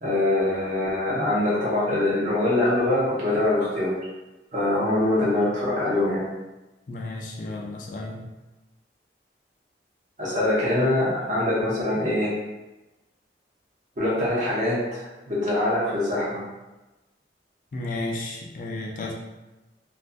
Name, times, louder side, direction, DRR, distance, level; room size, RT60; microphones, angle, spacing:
voice 1, 0.0-4.0 4.5-6.2 10.2-12.3 14.0-16.4, left 1 dB, 45° right, -7 dB, 0.8 m, -23 dB
voice 2, 6.9-8.2 17.7-19.1, left 2 dB, 45° left, 0 dB, 0.3 m, -33 dB
2.5 x 2.4 x 2.2 m, 1.1 s
head